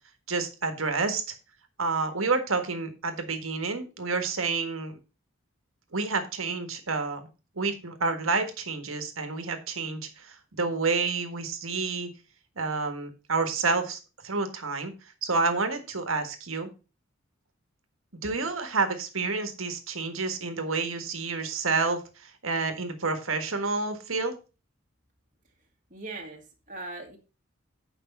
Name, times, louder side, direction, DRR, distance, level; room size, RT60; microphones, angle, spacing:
voice 1, 0.3-1.2 1.8-5.0 5.9-7.3 7.5-12.1 12.6-14.9 15.2-16.7 18.2-24.3, right 4 dB, 80° right, 7 dB, 1.7 m, -29 dB
voice 2, 25.9-27.2, right 2 dB, 40° right, 2 dB, 2.1 m, -40 dB
8.3 x 5.5 x 5.4 m, 0.32 s
head